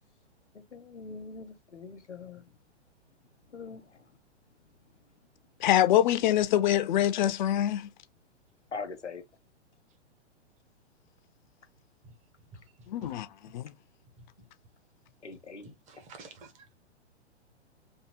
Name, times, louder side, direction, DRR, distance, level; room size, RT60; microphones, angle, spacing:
voice 1, 0.5-2.4 3.5-4.0 8.7-9.2 15.2-16.0, left 4 dB, 90° left, 0.9 m, -42 dB
voice 2, 5.6-7.9 12.9-13.3 13.5-13.7, left 12 dB, 45° left, 0.5 m, -24 dB
voice 3, 15.6-16.6, right 3 dB, 20° right, 0.9 m, -50 dB
3.5 x 2.6 x 3.0 m
figure-of-eight pair, 115°, 34 cm